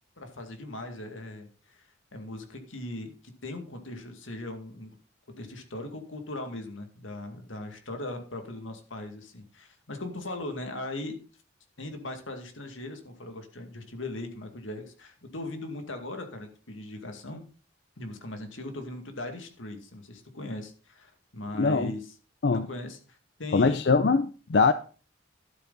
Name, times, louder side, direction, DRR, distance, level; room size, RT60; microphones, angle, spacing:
voice 1, 0.2-4.9 5.4-11.2 11.8-17.4 18.0-22.1 22.5-23.8, left 2 dB, 90° left, 2.2 m, -39 dB
voice 2, 21.6-21.9 22.4-22.7 23.5-24.7, left 4 dB, 60° left, 0.5 m, -22 dB
12.0 x 8.1 x 4.0 m
head